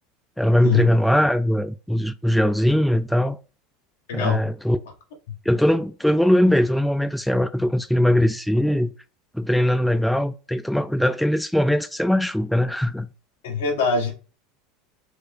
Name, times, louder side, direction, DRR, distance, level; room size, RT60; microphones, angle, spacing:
voice 1, 0.4-3.4 4.1-4.8 5.5-8.9 9.3-13.1, left 1 dB, ahead, 0.3 m, -20 dB
voice 2, 4.1-4.5 13.4-14.1, left 5 dB, 80° left, 1.1 m, -23 dB
3.4 x 2.0 x 3.3 m
hypercardioid pair, 95°, 0 cm